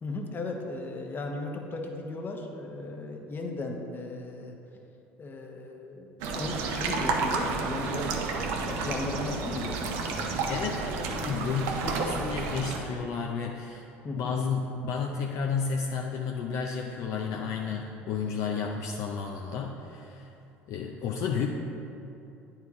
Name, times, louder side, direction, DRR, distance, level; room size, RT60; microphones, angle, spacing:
voice 1, 0.0-4.6 5.2-10.4 14.0-14.3, left 2 dB, 35° left, 2 dB, 1.0 m, -36 dB
sound 1, 6.2-12.8, right 4 dB, 65° right, 0.8 m, -31 dB
voice 2, 10.5-13.9 14.1-20.3 20.7-21.5, left 6 dB, 60° left, 1 dB, 0.5 m, -32 dB
9.3 x 4.5 x 3.7 m, 2.8 s
hypercardioid pair, 70°, 6 cm